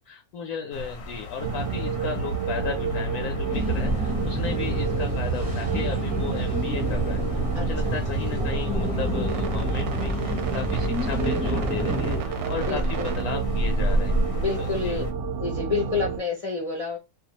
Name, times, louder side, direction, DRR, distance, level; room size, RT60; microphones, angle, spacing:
voice 1, 0.0-14.2 14.6-15.0, left 6 dB, 80° left, 1.0 m, -35 dB
sound 1, 0.7-15.1, equal, 60° left, 0.8 m, -33 dB
sound 2, 1.4-16.2, right 5 dB, 60° right, 0.8 m, -30 dB
sound 3, 3.5-12.2, equal, 5° right, 0.8 m, -29 dB
voice 2, 7.5-8.0 12.6-13.0 14.3-15.0 15.4-17.0, left 4 dB, 45° left, 0.4 m, -29 dB
2.5 x 2.3 x 2.8 m
omnidirectional pair, 1.6 m